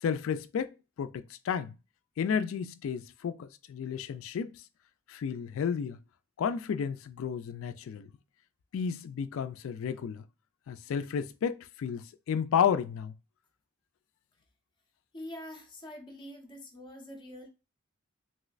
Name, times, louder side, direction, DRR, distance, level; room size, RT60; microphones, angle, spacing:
voice 1, 0.0-1.7 2.2-4.6 5.1-6.0 6.4-8.1 8.7-10.2 10.7-13.1, left 7 dB, 85° left, 0.3 m, -32 dB
voice 2, 15.1-17.5, left 1 dB, 25° left, 0.5 m, -45 dB
3.0 x 2.9 x 2.4 m
head